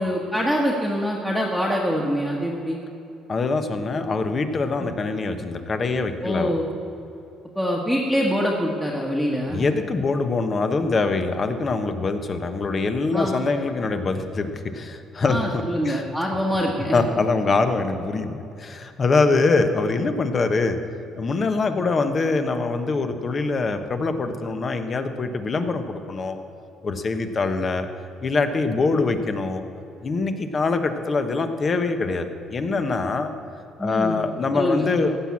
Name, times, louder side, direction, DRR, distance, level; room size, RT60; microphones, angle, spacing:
voice 1, 0.0-2.8 4.8-4.9 6.2-6.6 7.5-9.6 13.1-13.4 15.2-17.0 33.8-34.2 34.5-34.9, equal, 5° left, -3 dB, 1.4 m, -24 dB
voice 2, 3.3-6.5 9.5-16.0 16.8-20.8 21.2-26.4 26.8-27.9 28.2-29.6 30.0-33.3 33.8-35.1, left 3 dB, 35° left, 8 dB, 1.1 m, -24 dB
15.5 x 6.1 x 8.6 m, 2.9 s
cardioid pair, 110°, 0 cm